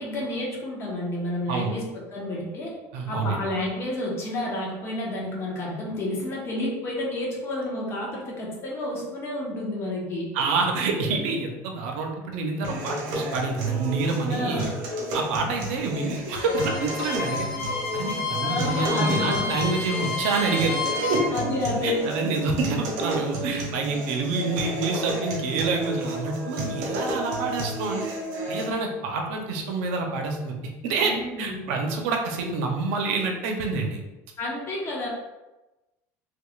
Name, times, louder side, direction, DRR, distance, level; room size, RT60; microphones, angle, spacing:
voice 1, 0.0-2.7 3.1-10.3 14.3-14.7 18.4-19.5 21.3-22.1 31.0-31.6 34.4-35.1, left 1 dB, 40° left, -3 dB, 1.1 m, -30 dB
voice 2, 2.9-3.4 10.3-14.6 15.1-17.5 17.9-21.2 21.8-28.1 28.5-30.6 30.8-34.0, right 3 dB, 85° right, 2 dB, 0.6 m, -27 dB
sound 1, 12.6-28.7, right 1 dB, 65° right, 1.1 m, -32 dB
Bowed string instrument, 16.3-21.3, left 4 dB, 80° left, 1.3 m, -30 dB
3.5 x 3.3 x 2.4 m, 1.0 s
cardioid pair, 130°, 7 cm